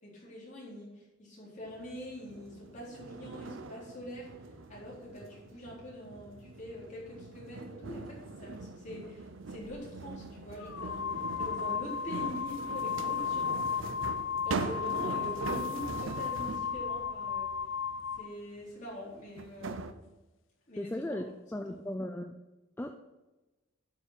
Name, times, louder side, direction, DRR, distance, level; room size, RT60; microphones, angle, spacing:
voice 1, 0.0-4.3 4.7-13.9 14.4-17.5 18.2-19.9 20.7-21.2 21.5-21.6, equal, 35° left, -5 dB, 4.1 m, -44 dB
sound 1, 1.7-16.8 18.6-18.7 19.4-19.9, right 3 dB, 70° right, 0.7 m, -42 dB
sound 2, 9.6-9.8 10.6-18.3, left 6 dB, 70° left, 0.5 m, -34 dB
voice 2, 20.8-22.4 22.8-23.0, left 1 dB, 10° left, 6 dB, 0.4 m, -37 dB
12.0 x 5.7 x 5.8 m, 1.1 s
head